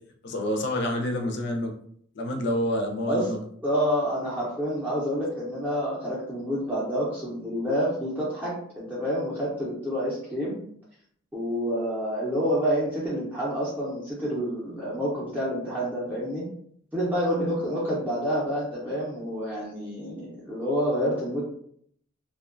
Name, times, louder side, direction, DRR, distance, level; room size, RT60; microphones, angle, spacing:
voice 1, 0.2-1.7 2.1-3.4, left 1 dB, 55° left, 3 dB, 0.5 m, -27 dB
voice 2, 3.6-10.6 11.3-16.5 16.9-21.4, equal, 10° right, -8 dB, 0.5 m, -28 dB
2.5 x 2.2 x 2.5 m, 0.64 s
head